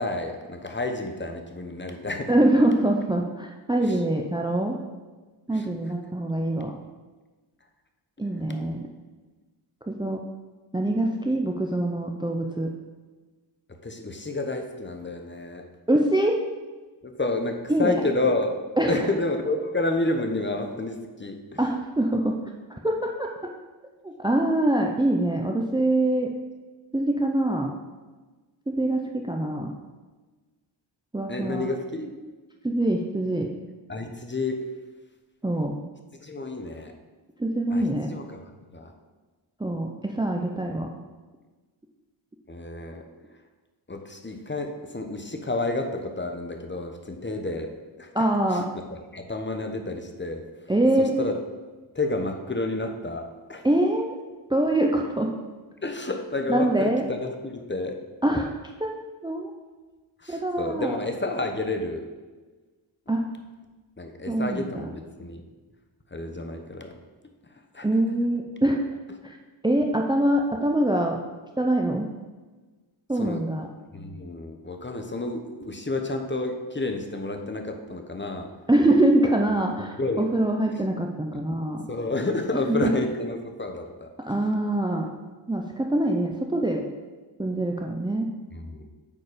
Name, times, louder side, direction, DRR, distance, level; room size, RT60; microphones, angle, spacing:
voice 1, 0.0-2.3 3.8-4.0 5.5-5.7 13.7-15.7 17.0-21.6 31.3-32.1 33.9-34.6 36.2-37.0 37.7-38.9 42.5-43.1 43.9-50.7 51.0-51.4 51.9-53.7 55.8-58.0 60.2-62.1 64.0-65.4 66.1-66.9 67.5-67.9 73.1-73.4 73.9-78.5 80.0-80.3 81.9-84.3 88.5-88.8, left 2 dB, 25° left, 4 dB, 1.0 m, -30 dB
voice 2, 2.3-4.8 5.5-6.7 8.2-8.8 9.9-10.2 10.7-12.7 15.9-16.4 17.7-17.9 18.8-19.1 21.6-22.3 22.8-23.3 24.0-26.3 26.9-27.7 28.8-29.7 31.1-31.7 32.6-33.5 35.4-35.7 37.4-38.1 39.6-40.9 48.1-48.6 50.7-51.2 53.6-54.1 54.5-55.3 56.5-57.0 58.2-58.5 58.8-59.5 60.3-61.0 63.1-63.2 64.3-64.8 67.8-68.8 69.2-69.4 69.6-71.2 71.6-72.1 73.1-73.7 78.7-81.9 82.7-82.9 84.2-85.1 85.5-86.8 87.4-88.3, right 1 dB, 10° right, 2 dB, 0.6 m, -24 dB
8.7 x 4.3 x 5.0 m, 1.3 s
cardioid pair, 70°, 49 cm